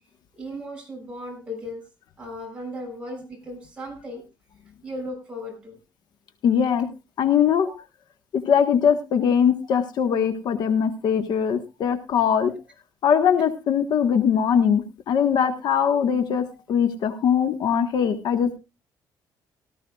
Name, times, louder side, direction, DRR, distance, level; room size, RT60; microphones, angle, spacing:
voice 1, 0.3-1.8 2.2-4.2 4.8-5.8 7.6-7.8 16.5-16.6, equal, 15° right, 0 dB, 6.5 m, -36 dB
voice 2, 6.4-6.9 7.2-7.7 8.3-12.5 13.0-18.6, left 7 dB, 60° left, 7 dB, 1.4 m, -21 dB
18.0 x 14.0 x 2.4 m, 0.28 s
cardioid pair, 170°, 8 cm